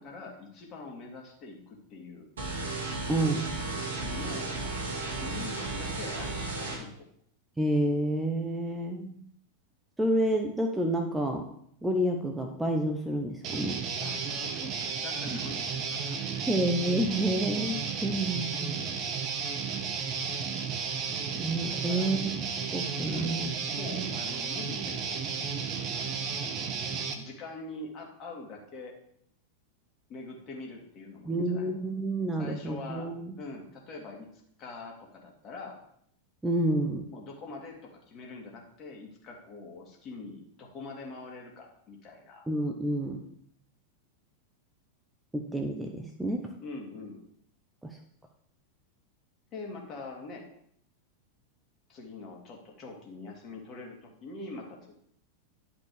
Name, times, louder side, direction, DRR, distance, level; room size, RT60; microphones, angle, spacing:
voice 1, 0.0-2.3 4.0-7.1 14.0-16.5 21.7-22.1 23.0-26.9 27.1-28.9 30.1-31.7 32.4-33.1 33.4-35.8 37.1-42.5 46.6-47.2 49.5-50.5 51.9-54.9, left 3 dB, 30° left, 0 dB, 2.4 m, -44 dB
sound 1, 2.4-6.8, right 3 dB, 60° right, 2.3 m, -34 dB
voice 2, 3.1-3.6 7.6-9.2 10.0-11.5 11.8-13.8 15.3-15.4 16.5-18.8 21.4-22.2 22.6-23.5 23.9-24.1 31.2-33.4 36.4-37.1 42.5-43.3 45.3-46.5 47.8-48.0, right 1 dB, 5° right, 3 dB, 0.8 m, -29 dB
Guitar, 13.4-27.1, right 6 dB, 35° right, 1.1 m, -33 dB
10.5 x 5.2 x 4.9 m, 0.68 s
figure-of-eight pair, 90°, 0 cm